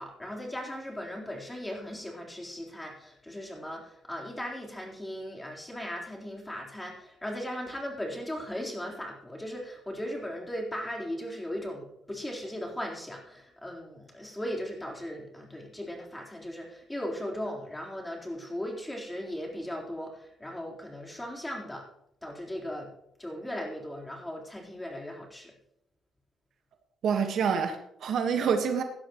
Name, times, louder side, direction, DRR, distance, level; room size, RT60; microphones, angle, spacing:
voice 1, 0.0-21.9 22.2-22.9 23.2-25.5, equal, 10° left, -1 dB, 4.0 m, -37 dB
voice 2, 27.0-28.8, right 6 dB, 65° right, 5 dB, 1.5 m, -27 dB
17.5 x 11.5 x 3.1 m, 0.74 s
cardioid pair, 90°, 0 cm